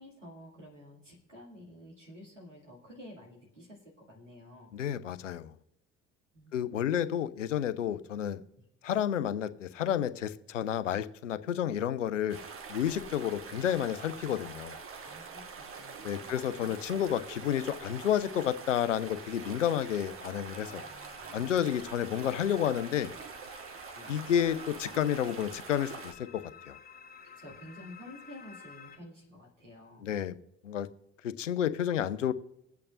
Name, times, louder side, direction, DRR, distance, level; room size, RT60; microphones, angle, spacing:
voice 1, 0.0-4.8 6.3-7.0 8.6-8.7 15.0-16.8 20.7-21.6 23.9-24.3 27.2-30.1, left 1 dB, 90° right, -4 dB, 2.3 m, -51 dB
voice 2, 4.7-5.5 6.5-8.4 8.8-12.4 12.7-14.8 16.0-20.8 21.3-23.1 24.1-26.8 30.0-30.3 30.6-30.9 31.2-32.3, left 10 dB, 80° left, 15 dB, 0.6 m, -30 dB
sound 1, 12.3-26.1, right 5 dB, 35° right, 1.4 m, -45 dB
sound 2, 18.7-29.0, left 7 dB, 25° left, 1.8 m, -53 dB
21.0 x 8.5 x 2.5 m, 0.83 s
figure-of-eight pair, 50°, 36 cm